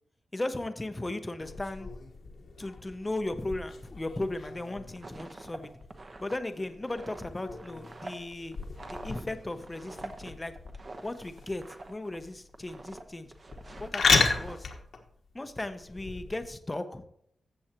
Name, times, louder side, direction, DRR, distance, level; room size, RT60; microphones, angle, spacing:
voice 1, 0.3-1.9 2.6-5.7 6.2-8.6 8.9-10.5 11.0-13.3 13.8-14.7 15.3-17.0, left 2 dB, 15° left, 9 dB, 0.7 m, -36 dB
sound 1, 1.4-16.5, left 4 dB, 65° left, 1.3 m, -34 dB
sound 2, 4.7-12.2 12.5-13.0 13.3-14.6, right 2 dB, 35° right, 0.9 m, -46 dB
14.0 x 7.8 x 2.9 m, 0.70 s
wide cardioid pair, 130°, 0 cm